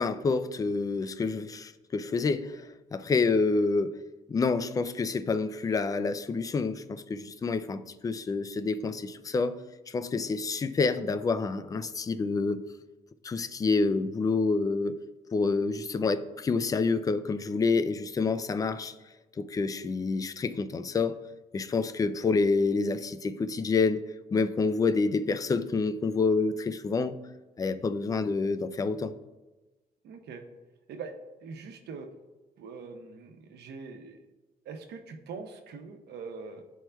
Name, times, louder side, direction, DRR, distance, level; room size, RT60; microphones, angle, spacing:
voice 1, 0.0-3.9 4.3-9.6 9.9-12.6 13.2-15.0 15.3-18.9 19.4-21.2 21.5-24.0 24.3-27.2 27.6-29.1, left 4 dB, 20° left, 0.3 m, -28 dB
voice 2, 30.0-30.4 30.9-31.1 31.4-32.1 32.6-34.2 34.6-36.6, right 5 dB, 85° right, 0.9 m, -42 dB
12.5 x 4.6 x 2.2 m
cardioid pair, 145°, 17 cm